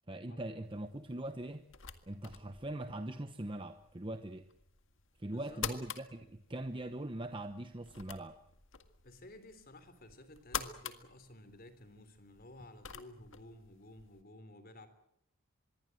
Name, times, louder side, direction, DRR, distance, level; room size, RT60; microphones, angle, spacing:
voice 1, 0.1-1.7 2.1-4.5 5.2-8.4, right 1 dB, 20° right, 9 dB, 0.9 m, -41 dB
sound 1, 0.6-14.2, left 8 dB, 60° left, 1.9 m, -48 dB
voice 2, 5.3-5.7 9.0-14.9, left 1 dB, 40° left, 11 dB, 3.5 m, -54 dB
25.5 x 22.0 x 7.8 m, 0.75 s
head